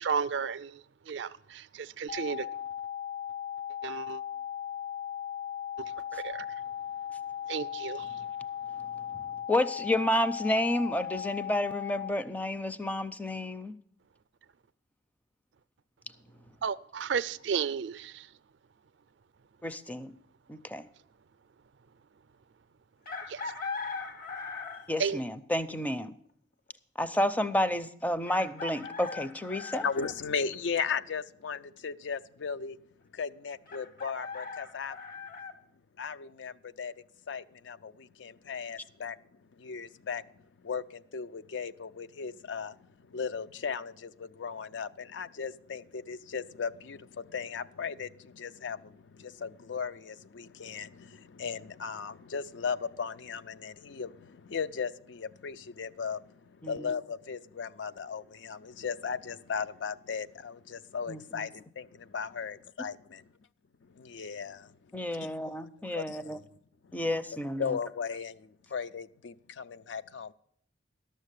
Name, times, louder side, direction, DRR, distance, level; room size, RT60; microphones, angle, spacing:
voice 1, 0.0-2.5 3.8-4.2 5.8-6.5 7.5-8.2 16.6-18.3 23.3-23.4 25.0-25.2, right 6 dB, 70° right, 0.4 m, -33 dB
sound 1, 2.1-12.1, left 9 dB, 90° left, 2.1 m, -37 dB
voice 2, 9.5-13.7 19.6-20.1 20.5-20.9 24.9-26.1 27.0-29.8 56.6-56.9 61.1-61.5 64.9-66.4 66.9-67.8, left 1 dB, 10° left, 0.5 m, -30 dB
Chicken rooster, 23.1-25.0 26.7-26.8 28.3-30.2 33.7-35.5, left 4 dB, 50° left, 1.1 m, -39 dB
voice 3, 29.7-32.8 33.1-35.0 36.0-36.9 37.3-39.2 39.6-61.9 62.1-63.3 63.8-65.3 65.9-66.4 66.8-66.9 67.6-70.3, left 6 dB, 70° left, 0.5 m, -37 dB
12.0 x 6.6 x 8.2 m
head